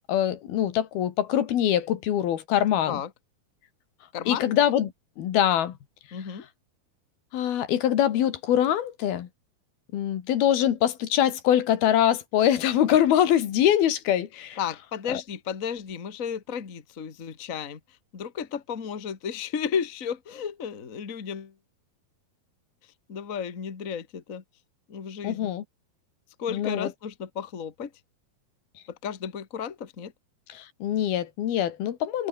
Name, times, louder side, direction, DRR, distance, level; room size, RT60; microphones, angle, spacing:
voice 1, 0.1-3.0 4.3-4.9 5.2-5.7 7.3-9.3 9.9-14.6 15.1-15.2 25.2-25.6 26.5-26.9 30.5-32.3, left 11 dB, 85° left, 3.8 m, -23 dB
voice 2, 4.1-4.5 6.1-6.5 14.6-17.8 18.1-21.5 23.1-24.4 24.9-25.5 26.4-27.9 28.9-30.1, left 7 dB, 30° left, 1.6 m, -33 dB
omnidirectional pair, 4.3 m